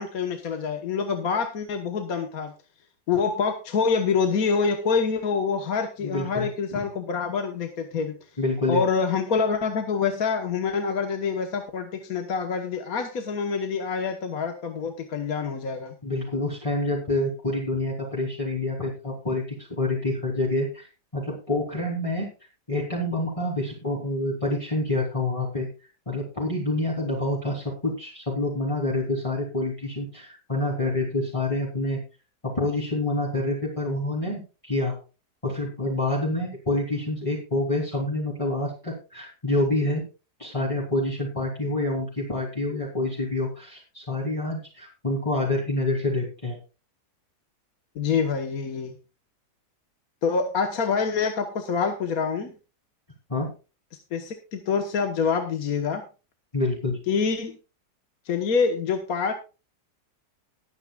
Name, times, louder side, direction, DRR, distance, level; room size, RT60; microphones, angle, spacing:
voice 1, 0.0-2.5 3.1-8.1 8.7-15.9 47.9-48.9 50.2-52.5 54.1-56.0 57.1-57.6 58.2-59.3, left 5 dB, 60° left, 5 dB, 1.6 m, -26 dB
voice 2, 6.0-6.9 8.4-8.8 16.0-20.9 21.1-22.3 22.7-25.7 26.1-32.0 32.4-35.0 35.4-40.0 40.4-46.6 53.3-53.5 56.5-57.0, left 2 dB, 20° left, -5 dB, 3.1 m, -27 dB
20.5 x 9.3 x 2.4 m, 0.32 s
omnidirectional pair, 1.8 m